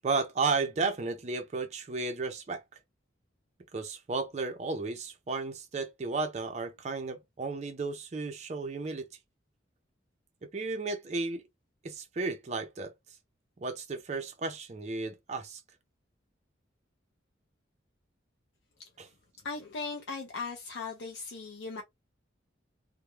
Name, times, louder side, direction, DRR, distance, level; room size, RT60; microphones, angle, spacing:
voice 1, 0.0-2.6 3.7-9.1 10.5-11.4 11.8-12.9 13.6-15.6 19.0-19.1, right 3 dB, 35° right, 0.4 m, -33 dB
voice 2, 19.4-21.8, left 4 dB, 65° left, 0.4 m, -38 dB
2.2 x 2.0 x 2.9 m
head